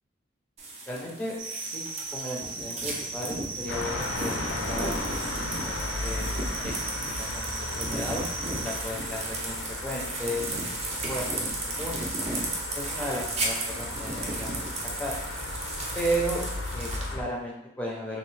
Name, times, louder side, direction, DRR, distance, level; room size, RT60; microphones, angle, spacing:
sound 1, 0.6-17.1, right 2 dB, 35° right, 0.5 m, -35 dB
voice 1, 0.9-1.3 1.6-5.0 5.4-6.3 6.6-8.2 8.6-12.0 12.7-15.1 15.9-16.4 16.7-18.2, equal, 10° left, -3 dB, 0.5 m, -35 dB
sound 2, 1.4-8.8, right 4 dB, 80° right, 0.6 m, -38 dB
sound 3, 3.7-17.2, left 2 dB, 85° left, 0.5 m, -35 dB
3.1 x 2.6 x 3.1 m, 0.86 s
head